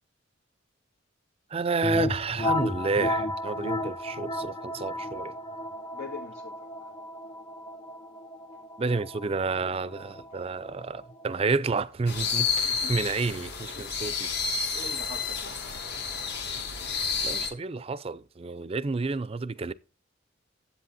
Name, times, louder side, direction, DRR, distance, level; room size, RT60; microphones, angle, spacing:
voice 1, 1.5-5.4 8.8-14.3 16.9-19.7, right 4 dB, 30° right, 0.4 m, -30 dB
sound 1, 1.8-11.4, left 1 dB, 15° left, 0.7 m, -33 dB
voice 2, 5.9-6.9 12.5-13.0 13.2-13.3 13.7-15.6 19.0-19.1, left 3 dB, 75° left, 1.7 m, -45 dB
sound 2, 12.1-17.5, left 5 dB, 55° left, 1.5 m, -30 dB
10.5 x 7.9 x 4.0 m
head